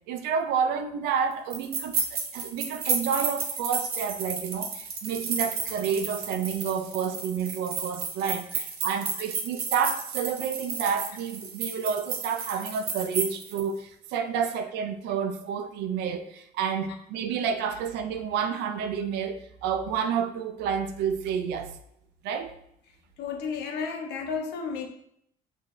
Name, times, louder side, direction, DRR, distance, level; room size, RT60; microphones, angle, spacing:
voice 1, 0.1-21.8 22.2-22.5, right 7 dB, 90° right, 0.5 m, -30 dB
sound 1, 1.5-13.6, right 5 dB, 65° right, 1.0 m, -32 dB
voice 2, 23.2-24.9, left 5 dB, 75° left, 0.8 m, -32 dB
6.1 x 2.8 x 3.1 m
cardioid pair, 110°, 17 cm